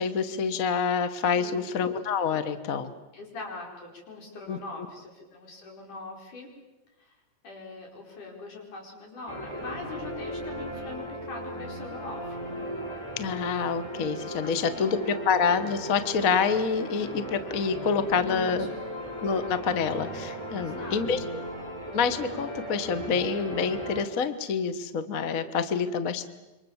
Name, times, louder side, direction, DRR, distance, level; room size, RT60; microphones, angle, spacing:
voice 1, 0.0-2.9 4.5-4.6 13.2-18.7 19.2-21.4 21.9-26.2, left 6 dB, 50° left, 11 dB, 1.0 m, -27 dB
voice 2, 1.3-1.7 3.1-6.5 7.0-7.2 7.4-12.5 14.4-15.2 18.1-19.0 20.5-21.4 26.0-26.3, left 3 dB, 85° left, 0 dB, 6.4 m, -42 dB
sound 1, 9.3-24.0, equal, 5° left, 3.4 m, -37 dB
27.5 x 24.5 x 7.2 m, 1.1 s
omnidirectional pair, 3.5 m